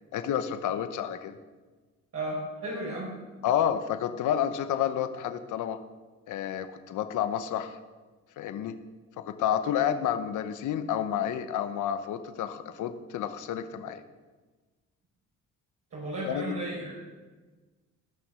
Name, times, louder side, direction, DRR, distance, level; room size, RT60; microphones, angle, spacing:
voice 1, 0.1-1.4 3.4-5.8 6.3-7.8 8.4-8.8 9.2-14.0 16.3-16.5, left 9 dB, 80° left, 10 dB, 0.9 m, -30 dB
voice 2, 2.1-3.1 15.9-16.9, right 1 dB, 55° right, -6 dB, 4.4 m, -34 dB
15.5 x 6.2 x 6.2 m, 1.3 s
cardioid pair, 90°, 30 cm